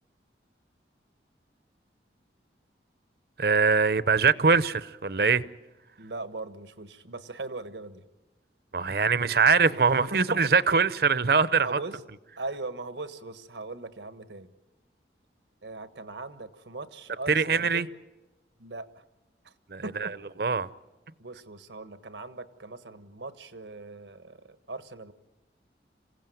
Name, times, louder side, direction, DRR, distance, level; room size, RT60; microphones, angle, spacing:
voice 1, 3.4-5.4 8.7-11.8 17.3-17.9 19.7-20.1 20.4-20.7, right 5 dB, 55° right, 0.7 m, -23 dB
voice 2, 6.0-8.1 10.1-10.5 11.5-12.0 12.4-14.5 15.6-17.9 18.6-19.0 19.4-19.5 19.8-20.1 21.2-25.1, right 3 dB, 85° right, 1.4 m, -39 dB
27.0 x 16.5 x 9.2 m
head